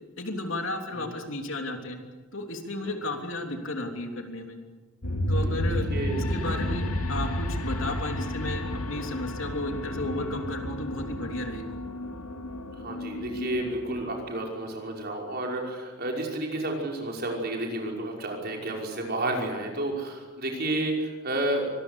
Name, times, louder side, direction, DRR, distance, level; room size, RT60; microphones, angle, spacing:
voice 1, 0.2-2.0 2.3-4.6 5.3-5.9 6.2-11.6, left 2 dB, 60° left, 4 dB, 3.3 m, -33 dB
sound 1, 5.0-14.2, left 1 dB, 90° left, 2.4 m, -31 dB
voice 2, 5.3-6.2 6.5-6.6 12.8-21.7, right 1 dB, 45° right, 0 dB, 5.6 m, -31 dB
25.0 x 21.0 x 8.4 m, 1.4 s
head